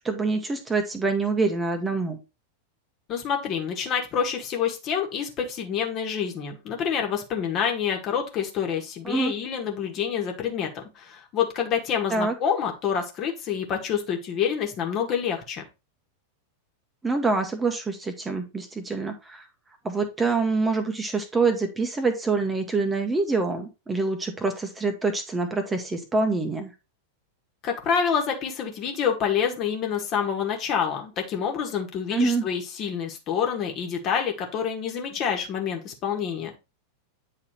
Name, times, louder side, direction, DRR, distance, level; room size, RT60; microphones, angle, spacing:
voice 1, 0.0-2.2 9.0-9.3 12.1-12.3 17.0-19.4 19.8-26.7 32.1-32.4, right 3 dB, 15° right, 5 dB, 1.2 m, -25 dB
voice 2, 3.1-15.7 27.6-36.6, left 7 dB, 35° left, 2 dB, 1.8 m, -27 dB
8.8 x 4.1 x 4.3 m, 0.28 s
figure-of-eight pair, 90°, 0 cm